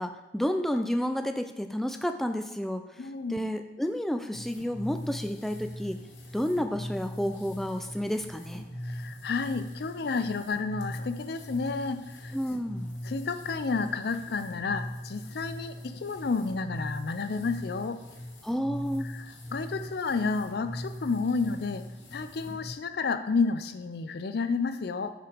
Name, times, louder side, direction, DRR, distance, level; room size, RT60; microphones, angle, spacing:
voice 1, 0.0-2.8 3.3-6.0 6.3-8.6 12.3-12.9 18.4-19.1, equal, ahead, 6 dB, 0.3 m, -30 dB
voice 2, 3.0-3.5 8.8-12.4 13.0-18.0 19.0-21.9 22.1-25.1, left 4 dB, 60° left, 10 dB, 0.5 m, -31 dB
sound 1, 4.3-22.7, equal, 90° left, 1.3 m, -41 dB
6.6 x 4.8 x 5.1 m, 1.1 s
head